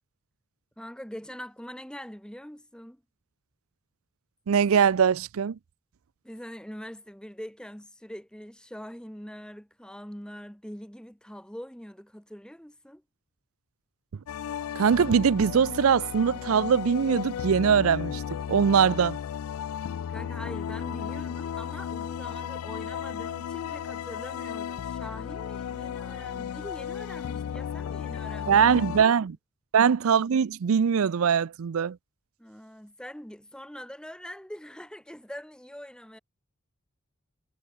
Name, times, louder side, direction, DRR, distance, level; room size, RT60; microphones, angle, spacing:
voice 1, 0.8-3.0 6.2-13.0 20.1-28.6 29.0-29.1 32.4-36.2, equal, 5° left, 2.4 m, -43 dB
voice 2, 4.5-5.6 14.8-18.2 18.5-19.2 28.5-29.4 29.7-32.0, right 7 dB, 75° right, 0.4 m, -22 dB
sound 1, 14.3-29.1, left 8 dB, 80° left, 0.3 m, -34 dB
head